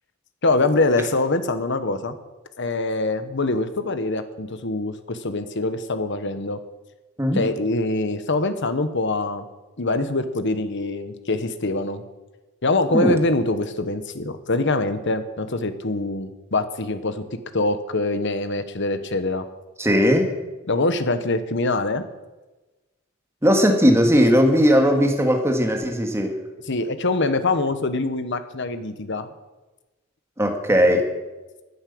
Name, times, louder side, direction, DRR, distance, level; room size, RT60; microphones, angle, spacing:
voice 1, 0.4-2.1 2.6-6.6 7.3-9.4 9.8-12.0 12.6-17.2 17.5-19.4 20.7-22.0 26.7-29.3, left 2 dB, 60° left, 10 dB, 1.2 m, -24 dB
voice 2, 19.8-20.3 23.4-26.3 30.4-31.0, equal, 15° right, 3 dB, 2.1 m, -18 dB
11.0 x 9.8 x 8.6 m, 1.1 s
head